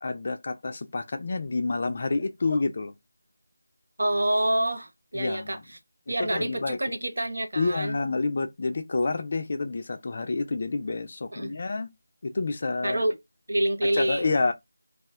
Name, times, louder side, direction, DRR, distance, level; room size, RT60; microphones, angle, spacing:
voice 1, 0.0-2.9 5.1-5.6 6.1-6.9 7.6-11.9 12.2-13.0 13.8-14.5, left 3 dB, 35° left, 0.3 m, -28 dB
voice 2, 4.0-5.6 6.1-7.9 11.3-11.6 12.8-13.2 13.5-14.4, right 1 dB, 65° right, 0.7 m, -27 dB
2.3 x 2.1 x 3.4 m
figure-of-eight pair, 175°, 0 cm